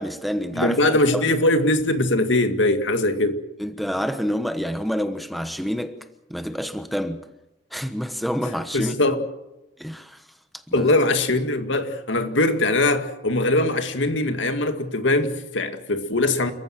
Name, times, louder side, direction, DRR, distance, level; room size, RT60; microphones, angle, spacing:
voice 1, 0.0-1.3 3.6-6.0 6.3-7.3 7.7-9.0 9.8-10.2 10.5-10.9, equal, ahead, 1.0 m, -28 dB
voice 2, 0.5-3.4 8.7-9.2 10.7-16.5, left 2 dB, 80° left, 2.1 m, -21 dB
30.0 x 15.0 x 7.7 m
head